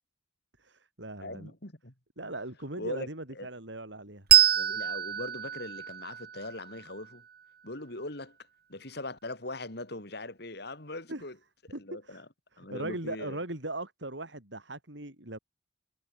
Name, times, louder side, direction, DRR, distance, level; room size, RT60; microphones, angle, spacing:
voice 1, 0.6-1.5 2.2-4.3 11.1-11.2 11.7-12.2 12.5-15.4, right 2 dB, 75° right, 6.2 m, -39 dB
voice 2, 1.2-1.9 2.2-2.3 2.8-3.5 4.5-7.2 7.6-8.3 8.7-11.4 11.8-12.2 12.6-13.4, left 2 dB, 60° left, 5.1 m, -40 dB
Bell, 4.3-7.4, right 11 dB, 55° right, 1.6 m, -26 dB
head